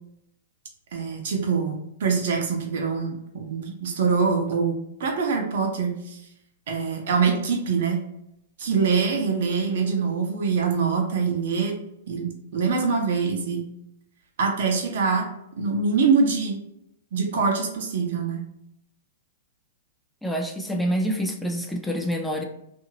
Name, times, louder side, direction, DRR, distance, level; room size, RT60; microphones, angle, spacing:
voice 1, 0.9-6.2 6.7-8.0 8.6-11.7 12.1-13.7 14.4-15.2 15.6-16.6 17.1-18.4, right 5 dB, 65° right, 1 dB, 0.8 m, -24 dB
voice 2, 20.2-22.4, equal, 5° left, 1 dB, 0.4 m, -27 dB
2.7 x 2.5 x 2.8 m, 0.78 s
hypercardioid pair, 135°, 0 cm